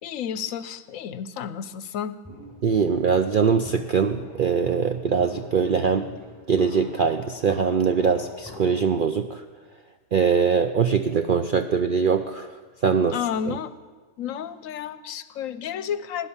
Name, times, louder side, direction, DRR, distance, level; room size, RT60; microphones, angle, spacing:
voice 1, 0.0-2.2 13.1-13.7 14.2-16.3, left 8 dB, 70° left, 15 dB, 1.0 m, -31 dB
Walk footsteps, 2.2-8.9, left 1 dB, 10° right, 5.7 m, -43 dB
voice 2, 2.6-6.1 6.5-9.4 10.1-12.5 12.8-13.2, right 6 dB, 60° right, 8 dB, 0.5 m, -22 dB
16.5 x 10.0 x 7.2 m, 1.4 s
omnidirectional pair, 1.5 m